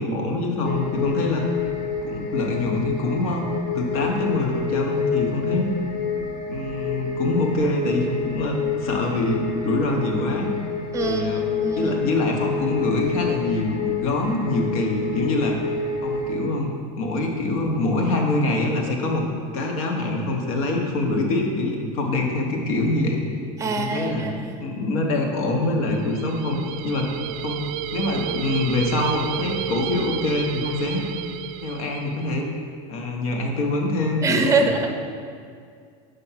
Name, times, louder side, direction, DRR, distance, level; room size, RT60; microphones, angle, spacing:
voice 1, 0.0-1.4 2.0-3.4 3.7-5.7 6.5-10.5 11.0-11.5 11.8-15.6 16.0-19.2 19.5-23.3 23.6-24.3 24.6-26.6 26.8-27.1 27.4-27.6 27.9-31.0 31.6-32.5 32.9-34.7, left 2 dB, 85° left, 1 dB, 1.1 m, -24 dB
sound 1, 0.6-16.3, left 5 dB, 55° left, 1.0 m, -28 dB
voice 2, 10.9-12.0 23.6-24.6 34.2-34.9, right 3 dB, 15° right, 5 dB, 0.6 m, -24 dB
sound 2, 25.9-32.3, right 10 dB, 65° right, 0.4 m, -32 dB
5.3 x 4.5 x 5.7 m, 2.2 s
supercardioid pair, 130°, 18 cm